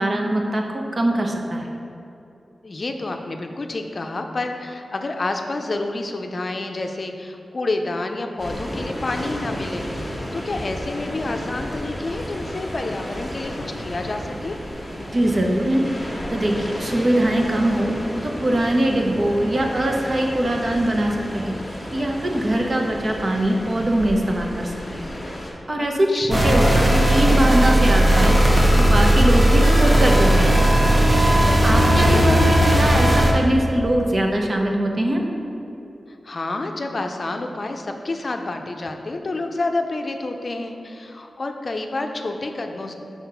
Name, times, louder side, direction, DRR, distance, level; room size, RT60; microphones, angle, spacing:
voice 1, 0.0-1.7 15.1-15.9 16.3-17.9 18.2-21.6 21.9-25.0 25.7-30.6 31.4-35.2, right 1 dB, 45° right, 1 dB, 0.9 m, -22 dB
voice 2, 2.6-13.5 13.8-14.6 25.8-26.9 31.2-32.4 36.1-43.0, left 2 dB, 50° left, 4 dB, 0.5 m, -29 dB
sound 1, 8.4-25.5, equal, 10° left, 1.5 m, -32 dB
sound 2, 26.3-33.3, right 1 dB, 25° right, 1.0 m, -16 dB
5.7 x 4.4 x 5.7 m, 2.8 s
wide cardioid pair, 75°, 0 cm